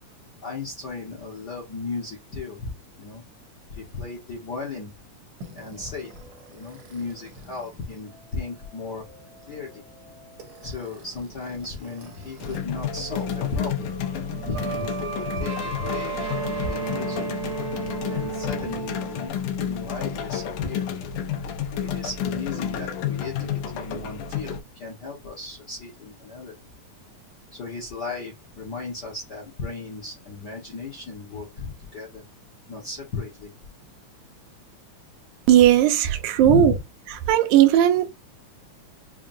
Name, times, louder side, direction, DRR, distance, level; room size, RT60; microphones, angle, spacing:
voice 1, 0.4-2.7 3.0-3.2 3.7-4.9 5.5-6.2 6.5-9.0 9.5-9.8 10.6-13.9 14.4-17.2 18.0-19.4 19.7-20.9 21.8-26.6 27.5-32.2 32.7-33.5 36.4-36.8, left 4 dB, 55° left, 1.1 m, -35 dB
sound 1, 5.4-12.6 12.9-19.3, right 4 dB, 55° right, 1.3 m, -36 dB
sound 2, 12.4-24.6, left 8 dB, 85° left, 2.3 m, -31 dB
voice 2, 35.5-36.7 37.3-38.1, right 11 dB, 85° right, 2.1 m, -17 dB
5.7 x 2.2 x 2.6 m
omnidirectional pair, 3.5 m